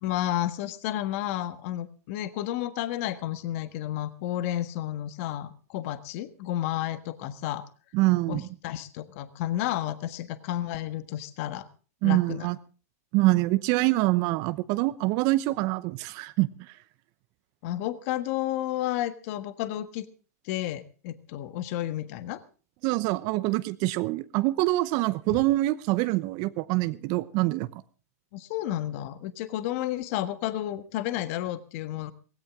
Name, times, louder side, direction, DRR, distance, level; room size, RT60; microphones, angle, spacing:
voice 1, 0.0-7.6 8.3-11.7 12.0-12.5 17.6-20.1 20.4-22.4 28.3-32.1, left 13 dB, 55° left, 12 dB, 1.5 m, -31 dB
voice 2, 7.9-8.4 12.0-12.6 13.1-16.5 22.8-27.8, right 19 dB, 45° right, 14 dB, 0.8 m, -25 dB
17.5 x 16.5 x 3.7 m, 0.37 s
hypercardioid pair, 110°, 9 cm